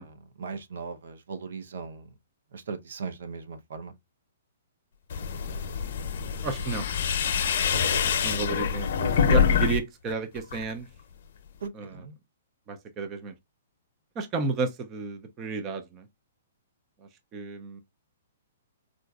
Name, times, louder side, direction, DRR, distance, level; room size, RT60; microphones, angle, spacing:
voice 1, 0.0-2.1 2.5-3.9 7.7-8.0 11.6-12.2, right 5 dB, 70° right, 0.6 m, -38 dB
sound 1, 5.1-9.8 10.1-10.7, left 7 dB, 55° left, 0.6 m, -25 dB
voice 2, 6.4-6.9 8.0-10.9 11.7-12.0 12.7-13.3 14.2-16.1 17.0-17.8, right 4 dB, 20° right, 0.4 m, -32 dB
3.8 x 2.5 x 2.3 m
hypercardioid pair, 160°, 0 cm